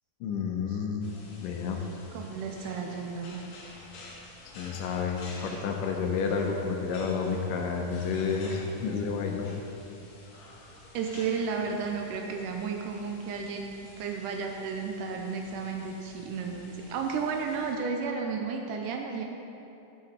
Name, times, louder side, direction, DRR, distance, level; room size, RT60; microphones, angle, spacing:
voice 1, 0.2-1.1 1.4-1.8 4.6-9.5, left 5 dB, 80° left, 2 dB, 2.2 m, -30 dB
sound 1, 1.0-17.7, left 2 dB, 60° left, 2.1 m, -50 dB
voice 2, 2.1-3.4 10.9-19.3, right 5 dB, 80° right, 2 dB, 2.0 m, -33 dB
9.2 x 7.4 x 4.2 m, 2.9 s
omnidirectional pair, 4.0 m